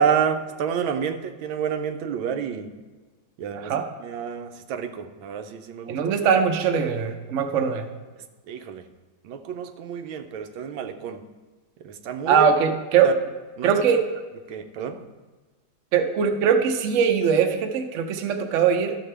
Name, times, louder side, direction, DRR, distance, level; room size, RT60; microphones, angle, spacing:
voice 1, 0.0-2.8 3.4-3.7 4.0-6.0 8.2-8.8 9.2-11.3 11.8-12.4 13.0-13.1 13.6-13.7 14.5-15.1, right 7 dB, 90° right, 7 dB, 1.4 m, -29 dB
voice 2, 3.6-3.9 5.9-7.9 12.3-13.1 13.6-14.0 15.9-19.0, right 7 dB, 60° right, 5 dB, 0.8 m, -21 dB
12.5 x 6.6 x 3.3 m, 1.3 s
omnidirectional pair, 2.1 m